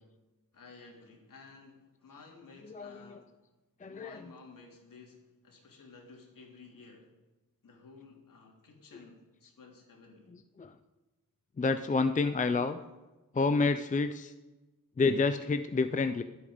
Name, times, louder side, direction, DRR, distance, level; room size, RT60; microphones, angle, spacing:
voice 1, 0.5-3.4 3.9-7.1 7.6-10.3, left 4 dB, 65° left, 1 dB, 3.2 m, -54 dB
voice 2, 2.7-3.2 3.8-4.2 10.6-10.7 11.6-12.8 13.3-14.3 15.0-16.2, left 4 dB, 20° left, 10 dB, 0.5 m, -29 dB
22.0 x 8.6 x 5.1 m, 1.1 s
wide cardioid pair, 140°, 36 cm